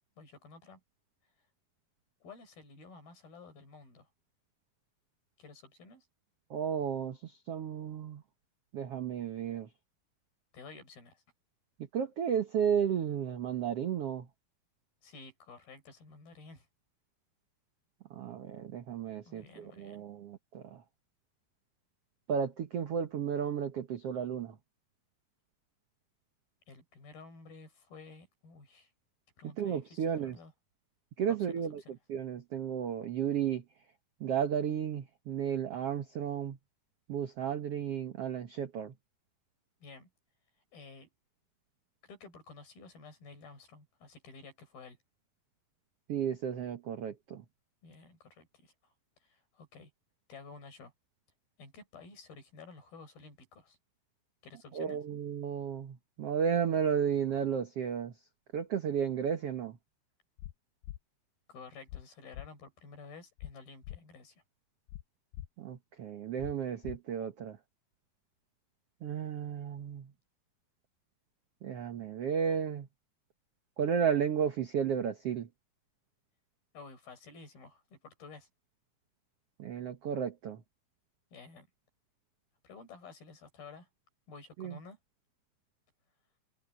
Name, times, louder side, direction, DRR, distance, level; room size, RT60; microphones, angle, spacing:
voice 1, 0.2-0.8 2.2-4.1 5.4-6.1 10.5-11.2 15.0-16.7 19.3-20.0 26.7-28.9 29.4-30.5 31.3-31.9 39.8-40.1 40.7-41.1 42.1-45.0 47.8-48.7 49.2-49.9 50.3-50.9 51.6-53.8 54.4-55.0 61.5-64.4 76.7-78.5 81.3-81.7 82.6-83.9 84.3-85.0, left 4 dB, 65° left, 8.0 m, -52 dB
voice 2, 6.5-8.2 8.7-9.7 11.9-14.3 18.1-20.8 22.3-24.5 29.4-30.4 31.2-31.8 32.1-33.6 34.2-36.6 37.1-38.9 46.1-47.4 54.7-58.1 58.5-59.8 65.6-67.6 69.0-70.1 71.6-72.9 73.8-75.5 79.6-80.6 84.6-84.8, right 8 dB, 85° right, 1.3 m, -33 dB
sound 1, 60.4-60.5 60.8-61.0 61.9-62.0 62.3-62.5 63.4-63.5 63.8-64.0 64.9-65.0 65.3-65.5 66.4-66.5 66.8-67.0, left 15 dB, 85° left, 2.0 m, -42 dB
omnidirectional pair, 4.6 m